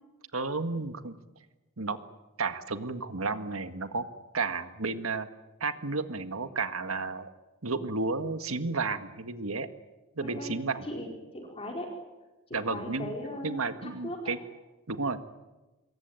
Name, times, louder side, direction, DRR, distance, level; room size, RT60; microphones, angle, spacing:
voice 1, 0.3-1.2 1.8-2.0 2.4-4.1 4.3-5.3 5.6-7.3 7.6-9.7 10.2-10.9 12.5-13.1 13.4-14.4 14.9-15.2, right 3 dB, 80° right, 9 dB, 1.8 m, -32 dB
voice 2, 10.2-10.5 10.8-11.9 12.5-14.4, left 1 dB, 25° left, 1 dB, 4.7 m, -38 dB
27.0 x 22.0 x 9.1 m, 1.1 s
head